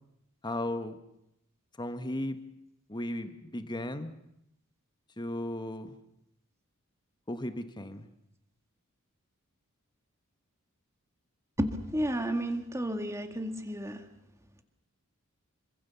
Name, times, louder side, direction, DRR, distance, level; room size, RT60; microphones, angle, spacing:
voice 1, 0.4-1.0 1.8-2.4 2.9-4.1 5.2-5.9 7.3-8.1, left 1 dB, 20° left, 9 dB, 1.4 m, -35 dB
voice 2, 11.6-14.0, equal, 15° right, 6 dB, 2.0 m, -32 dB
27.0 x 25.0 x 7.1 m, 0.81 s
head